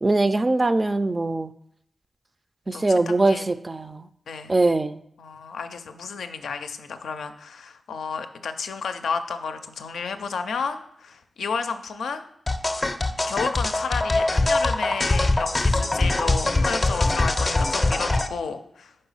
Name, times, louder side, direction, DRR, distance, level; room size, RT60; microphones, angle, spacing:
voice 1, 0.0-1.5 2.7-4.1 4.5-5.0, right 2 dB, 35° right, 12 dB, 0.4 m, -22 dB
voice 2, 2.7-3.5 4.3-4.5 5.2-12.3 13.3-19.0, left 5 dB, 85° left, 8 dB, 0.4 m, -32 dB
sound 1, 12.5-18.3, left 2 dB, 35° left, 0.5 m, -23 dB
5.3 x 4.0 x 5.5 m, 0.73 s
cardioid pair, 45°, 0 cm